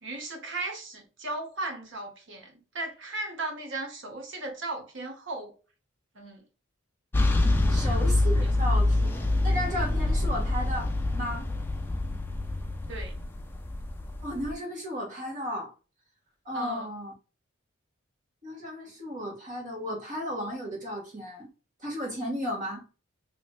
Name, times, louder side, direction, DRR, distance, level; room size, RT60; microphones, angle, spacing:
voice 1, 0.0-5.5 6.1-6.4 7.6-8.0 8.4-8.5 12.9-13.2 16.5-16.9, right 2 dB, 65° right, 1.1 m, -36 dB
sound 1, 7.1-14.5, left 2 dB, 10° left, 0.4 m, -26 dB
voice 2, 7.7-11.5 14.2-15.7 16.4-17.1 18.4-21.5 21.8-22.8, equal, 40° right, 1.7 m, -34 dB
3.2 x 3.1 x 2.3 m
head